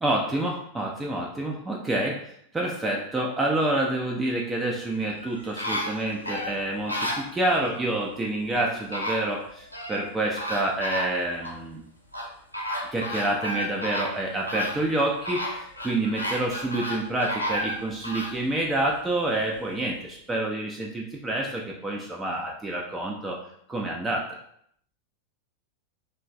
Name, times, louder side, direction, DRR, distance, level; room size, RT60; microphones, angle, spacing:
voice 1, 0.0-11.8 12.9-23.4 23.7-24.4, right 1 dB, 10° right, -1 dB, 0.3 m, -28 dB
sound 1, 4.9-7.8 8.5-8.6 8.9-10.0 10.4-11.6 12.1-18.4 18.9-19.0, equal, 85° left, 0.4 m, -32 dB
3.0 x 2.1 x 2.5 m, 0.68 s
figure-of-eight pair, 90°, 0 cm